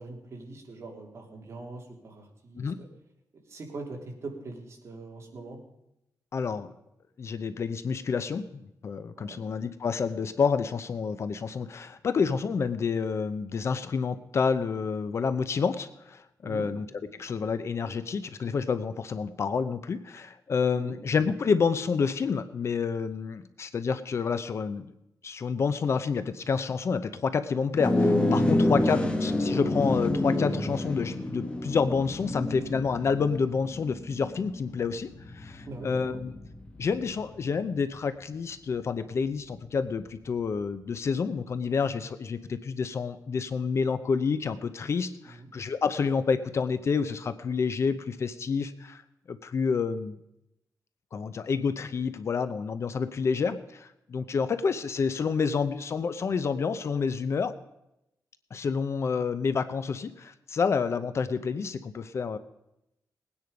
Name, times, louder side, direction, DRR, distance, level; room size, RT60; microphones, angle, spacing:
voice 1, 0.0-2.9 3.3-5.6 9.2-9.4 16.4-16.7 20.7-21.0 28.5-29.0 35.7-36.2 45.2-45.5, right 3 dB, 45° right, 0 dB, 3.1 m, -42 dB
voice 2, 6.3-6.7 7.2-8.5 8.8-16.9 17.2-24.9 25.2-36.3 36.8-49.0 49.3-50.2 51.1-57.5 58.5-62.4, left 5 dB, 45° left, 12 dB, 0.7 m, -29 dB
sound 1, 27.8-37.3, left 1 dB, 15° left, 1.3 m, -28 dB
19.5 x 9.7 x 5.2 m, 0.85 s
wide cardioid pair, 165°, 7 cm